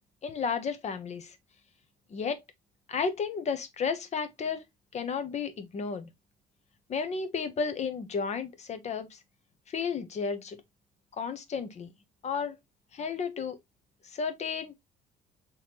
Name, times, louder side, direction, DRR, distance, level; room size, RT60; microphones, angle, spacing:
voice 1, 0.2-1.4 2.1-2.4 2.9-4.6 4.9-6.1 6.9-9.2 9.7-10.6 11.2-11.9 12.2-12.6 12.9-13.6 14.0-14.7, left 5 dB, 40° left, 0.8 m, -33 dB
4.2 x 3.1 x 2.9 m
cardioid pair, 110°, 17 cm